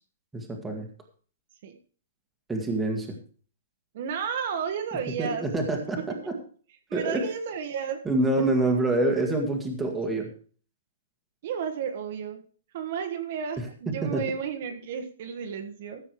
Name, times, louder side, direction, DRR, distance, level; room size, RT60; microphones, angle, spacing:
voice 1, 0.3-0.9 2.5-3.1 5.2-6.0 6.3-6.4 6.9-7.2 8.0-10.3 14.0-14.2, right 2 dB, 5° right, 1 dB, 1.7 m, -26 dB
voice 2, 3.9-5.5 6.9-8.0 8.4-8.6 11.4-12.4 12.7-16.0, right 7 dB, 35° right, 5 dB, 1.4 m, -32 dB
15.0 x 7.7 x 4.7 m, 0.41 s
hypercardioid pair, 180°, 0 cm